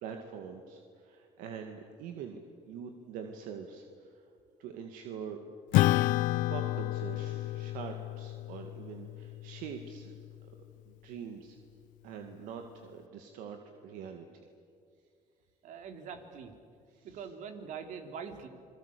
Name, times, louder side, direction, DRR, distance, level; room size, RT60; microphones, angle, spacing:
voice 1, 0.0-2.4 2.7-4.2 4.6-5.4 6.5-10.2 10.4-10.5 10.9-11.6 12.0-14.4 16.9-17.2, right 7 dB, 80° right, 5 dB, 2.1 m, -44 dB
Acoustic guitar / Strum, 5.7-10.5, left 17 dB, 75° left, 0.5 m, -31 dB
voice 2, 15.6-16.5 17.0-18.5, right 6 dB, 65° right, 7 dB, 3.2 m, -43 dB
27.5 x 22.5 x 8.4 m, 2.3 s
cardioid pair, 95°, 14 cm